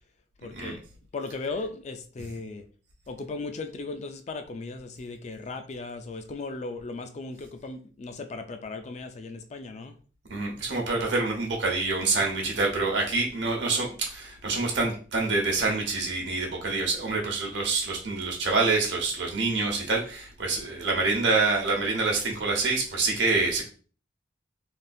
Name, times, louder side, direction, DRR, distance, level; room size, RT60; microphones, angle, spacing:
voice 1, 0.4-0.8 1.1-2.6 3.1-10.0, left 3 dB, 35° left, 0.3 m, -37 dB
voice 2, 10.3-23.6, right 3 dB, 70° right, 1.0 m, -26 dB
3.5 x 2.4 x 2.6 m
head